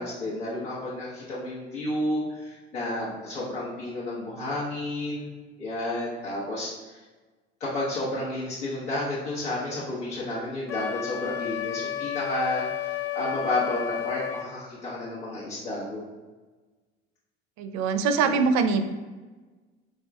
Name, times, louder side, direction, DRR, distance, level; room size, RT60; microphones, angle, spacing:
voice 1, 0.0-5.3 5.6-7.0 7.6-16.0 18.2-18.4, left 1 dB, 80° left, -9 dB, 1.1 m, -31 dB
Wind instrument woodwind instrument, 10.7-14.5, left 11 dB, 40° left, 0.4 m, -32 dB
voice 2, 17.6-18.8, right 5 dB, 55° right, 9 dB, 0.6 m, -23 dB
3.7 x 3.6 x 3.4 m, 1.3 s
hypercardioid pair, 70°, 33 cm